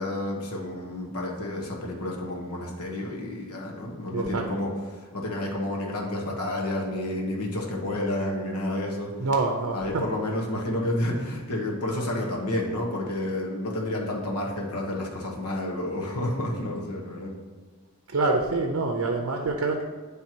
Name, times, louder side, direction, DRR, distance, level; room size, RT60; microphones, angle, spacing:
voice 1, 0.0-9.1 9.7-17.3, left 1 dB, 85° left, -1 dB, 1.3 m, -30 dB
voice 2, 4.1-4.4 9.2-10.0 18.1-19.8, right 3 dB, 65° right, 2 dB, 0.6 m, -26 dB
9.4 x 3.4 x 4.5 m, 1.4 s
head